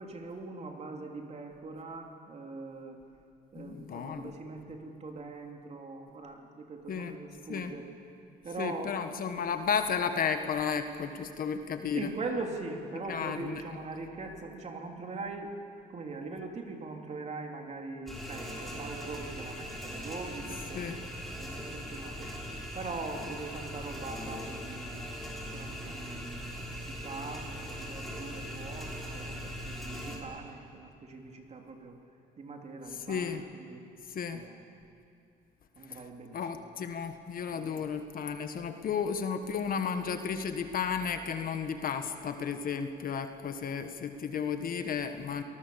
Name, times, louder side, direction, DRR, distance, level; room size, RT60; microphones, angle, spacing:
voice 1, 0.0-3.0 3.5-7.9 8.4-9.2 10.9-11.1 11.9-15.5 15.9-21.1 21.4-32.0 32.4-33.8 34.3-34.6 35.8-36.7 37.5-37.9, right 3 dB, 35° right, 2 dB, 3.1 m, -42 dB
voice 2, 3.6-4.3 6.9-7.1 7.5-7.7 8.6-12.1 13.1-13.6 20.7-21.0 33.1-33.4 34.1-34.4 35.9-36.0 36.3-45.4, left 6 dB, 50° left, 8 dB, 1.5 m, -33 dB
sound 1, 18.1-30.2, equal, ahead, 4.7 m, -40 dB
28.0 x 19.0 x 7.1 m, 2.4 s
cardioid pair, 110°, 19 cm